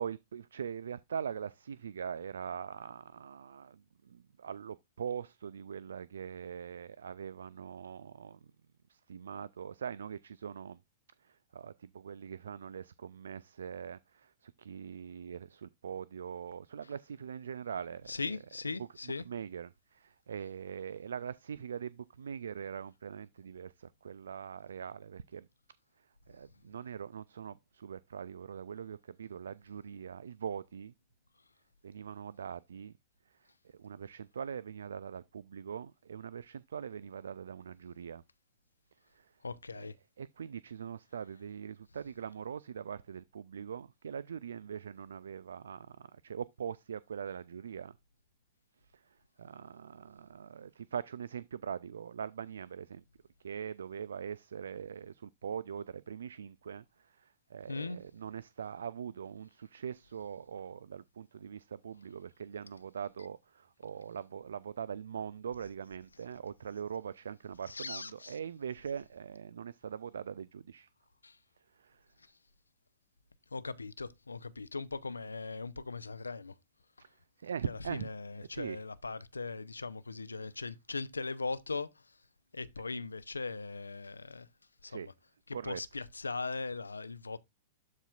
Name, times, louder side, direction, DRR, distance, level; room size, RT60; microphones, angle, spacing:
voice 1, 0.0-8.5 8.9-10.8 11.2-18.1 18.8-25.5 26.3-30.9 31.8-32.9 33.6-38.2 39.1-39.3 39.7-39.9 40.2-47.9 48.9-49.0 49.4-53.0 53.4-70.9 71.8-72.0 77.0-77.1 77.4-78.1 78.5-78.8 84.8-85.1 85.5-85.8, right 7 dB, 70° right, 0.3 m, -42 dB
voice 2, 18.1-19.2 39.4-39.9 57.7-58.0 67.7-68.4 71.2-71.4 73.5-76.5 77.7-81.9 82.5-84.5 84.8-85.1 85.5-87.4, left 4 dB, 85° left, 0.5 m, -39 dB
12.5 x 4.2 x 2.4 m
figure-of-eight pair, 100°, 0 cm